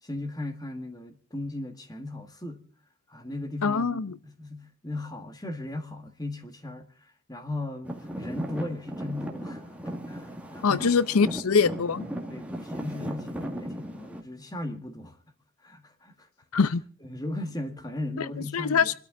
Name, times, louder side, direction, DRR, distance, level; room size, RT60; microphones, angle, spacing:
voice 1, 0.0-2.6 3.1-11.2 12.3-15.2 15.6-16.3 16.5-16.6 17.0-18.9, left 1 dB, 15° left, 1.7 m, -37 dB
voice 2, 3.6-4.1 10.6-12.1 16.5-16.8 18.2-18.3 18.5-18.9, left 5 dB, 85° left, 0.7 m, -23 dB
Traffic noise roadway noise / Engine, 7.8-14.2, equal, 5° right, 1.8 m, -36 dB
26.5 x 13.0 x 3.8 m
head